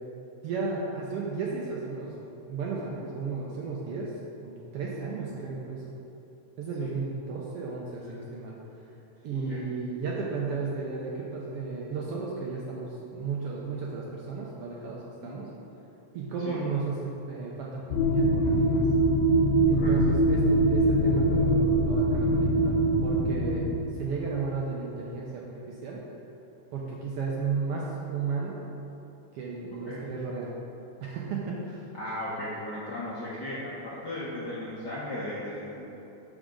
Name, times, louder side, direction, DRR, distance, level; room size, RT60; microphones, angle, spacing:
voice 1, 0.4-2.1 2.5-4.1 4.4-5.8 6.6-8.6 9.2-15.5 16.1-18.8 19.7-22.8 23.0-23.6 23.9-26.0 26.7-28.6 29.3-30.5 31.0-31.9, right 4 dB, 70° right, -4 dB, 1.5 m, -34 dB
sound 1, 17.9-23.8, right 1 dB, 85° left, 2.0 m, -23 dB
voice 2, 19.8-20.2 29.8-30.0 31.9-35.8, left 1 dB, 55° left, -8 dB, 1.2 m, -36 dB
12.5 x 5.0 x 3.8 m, 2.9 s
omnidirectional pair, 3.3 m